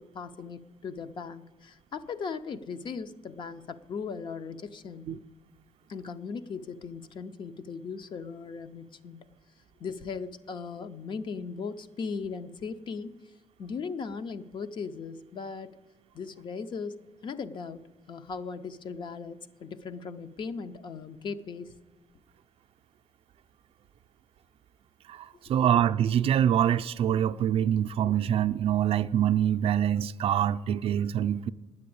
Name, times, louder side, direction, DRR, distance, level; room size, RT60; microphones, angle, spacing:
voice 1, 0.0-5.1 5.9-9.2 9.8-13.1 13.6-15.7 16.1-16.9 17.2-17.8 18.1-21.7, left 5 dB, 45° left, 0.6 m, -38 dB
voice 2, 25.1-31.5, right 10 dB, 60° right, 0.4 m, -25 dB
9.5 x 8.7 x 8.5 m
cardioid pair, 160°, 11 cm